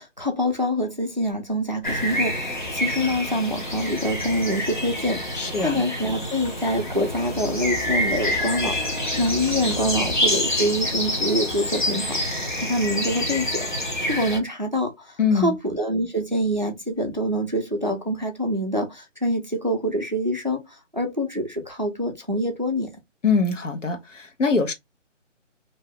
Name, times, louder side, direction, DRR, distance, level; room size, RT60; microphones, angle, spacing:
voice 1, 0.0-22.9, equal, 35° right, 0.5 m, -26 dB
sound 1, 1.8-14.4, left 1 dB, 40° left, 0.9 m, -27 dB
voice 2, 5.3-5.8 15.2-15.5 23.2-24.7, left 4 dB, 70° left, 1.0 m, -23 dB
2.7 x 2.2 x 3.4 m
figure-of-eight pair, 180°, 38 cm